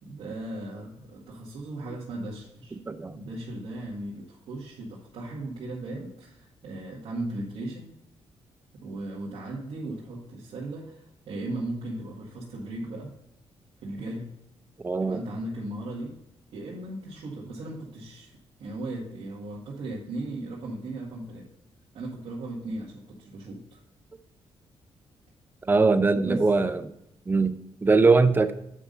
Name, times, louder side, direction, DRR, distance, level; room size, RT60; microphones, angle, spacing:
voice 1, 0.0-2.8 3.1-7.9 8.7-13.1 13.8-14.3 15.0-16.2 16.5-18.3 18.6-21.5 21.9-23.8 26.2-26.5, right 2 dB, 75° right, -5 dB, 1.8 m, -37 dB
voice 2, 2.9-3.2 14.8-15.2 25.6-26.9 27.3-28.5, right 3 dB, 20° right, 10 dB, 0.6 m, -21 dB
8.5 x 5.4 x 3.9 m, 0.83 s
cardioid pair, 140°, 10 cm